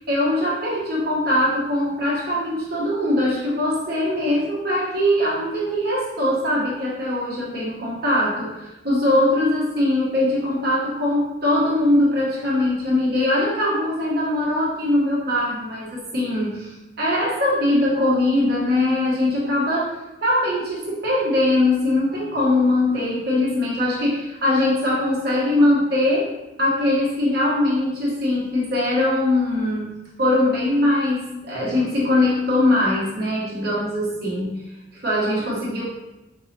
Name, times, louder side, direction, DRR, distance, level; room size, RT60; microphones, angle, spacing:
voice 1, 0.1-34.6 34.9-35.8, left 1 dB, 55° right, -5 dB, 1.0 m, -21 dB
3.8 x 2.9 x 4.0 m, 0.98 s
head